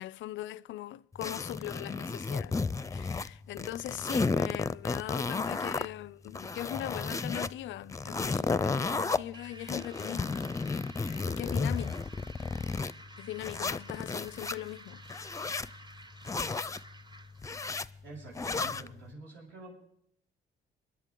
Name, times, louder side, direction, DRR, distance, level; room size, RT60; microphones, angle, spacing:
voice 1, 0.0-2.6 2.9-10.6 11.0-12.1 13.2-15.0, left 14 dB, 70° left, 0.4 m, -40 dB
sound 1, 1.2-3.3 3.6-5.9 6.3-7.5 7.9-9.2 9.7-12.9 13.4-14.6 15.1-15.7 16.2-16.8 17.4-17.9 18.4-18.9, left 4 dB, 15° left, 0.5 m, -32 dB
sound 2, 9.3-17.6, right 2 dB, 20° right, 0.8 m, -52 dB
voice 2, 18.0-19.7, right 2 dB, 75° right, 6.8 m, -47 dB
25.0 x 11.0 x 3.8 m
cardioid pair, 90°, 20 cm